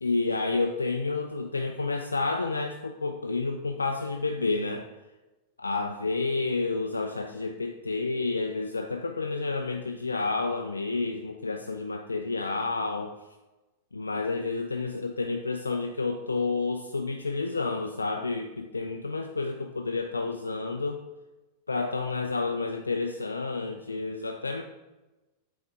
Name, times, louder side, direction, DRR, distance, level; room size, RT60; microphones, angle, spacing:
voice 1, 0.0-4.9 5.6-13.1 13.9-21.0 21.7-24.6, left 3 dB, 80° left, 4 dB, 0.4 m, -30 dB
7.7 x 3.5 x 3.5 m, 1.1 s
figure-of-eight pair, 95°, 0 cm